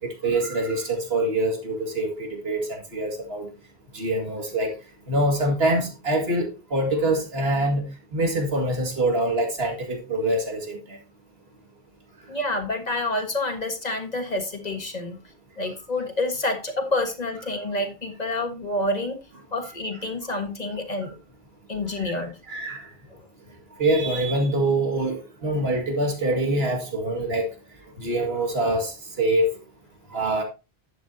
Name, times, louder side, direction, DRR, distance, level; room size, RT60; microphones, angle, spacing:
voice 1, 0.0-3.5 3.9-4.7 5.1-7.9 8.1-11.0 22.0-22.1 22.5-22.8 23.8-27.5 28.0-29.5 30.1-30.4, right 1 dB, 70° right, 2.4 m, -25 dB
voice 2, 12.3-15.2 15.6-19.2 19.5-21.1 21.7-22.4 23.1-23.3, left 2 dB, 40° left, 1.6 m, -28 dB
11.5 x 8.4 x 2.7 m
omnidirectional pair, 1.1 m